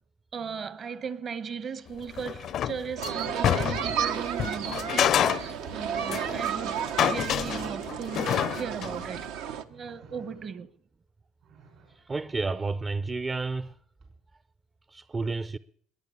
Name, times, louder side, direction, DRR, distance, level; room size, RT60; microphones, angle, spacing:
voice 1, 0.3-9.4 9.7-10.7, right 6 dB, 45° right, 1.3 m, -37 dB
sound 1, 2.0-4.0 4.4-6.5 6.8-9.0, left 10 dB, 60° left, 0.5 m, -27 dB
sound 2, 3.0-9.6, right 8 dB, 85° right, 1.2 m, -32 dB
sound 3, 9.6-10.9 11.4-12.1 14.0-14.1, right 5 dB, 65° right, 5.7 m, -54 dB
voice 2, 11.9-13.8 14.9-15.6, right 3 dB, 25° right, 0.5 m, -31 dB
21.5 x 9.1 x 7.2 m
supercardioid pair, 85°, 0 cm